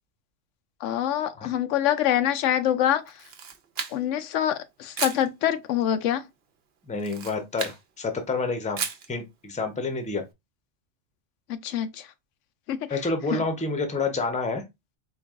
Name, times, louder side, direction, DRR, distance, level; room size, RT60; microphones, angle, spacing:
voice 1, 0.8-3.0 3.9-6.2 11.5-12.0 12.7-12.8 13.3-13.4, left 10 dB, 90° left, 0.9 m, -25 dB
Camera, 3.1-4.2 4.9-5.3 6.9-7.8 8.8-9.1, right 6 dB, 60° right, 0.9 m, -33 dB
voice 2, 6.9-8.8 9.1-10.2 12.9-14.6, left 3 dB, 10° left, 0.5 m, -28 dB
4.5 x 2.3 x 3.5 m
omnidirectional pair, 1.2 m